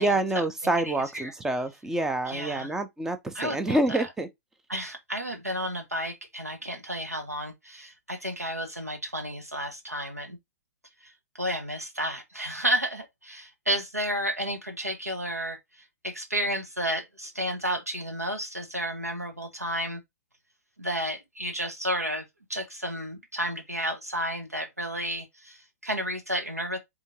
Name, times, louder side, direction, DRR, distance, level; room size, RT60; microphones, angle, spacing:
voice 1, 0.0-4.3, right 2 dB, 5° right, 0.6 m, -27 dB
voice 2, 0.8-1.3 2.3-2.7 3.3-4.1 4.7-10.4 11.0-20.0 20.8-22.2 22.5-26.8, equal, 90° right, 1.0 m, -32 dB
3.7 x 3.5 x 2.8 m
figure-of-eight pair, 110°, 8 cm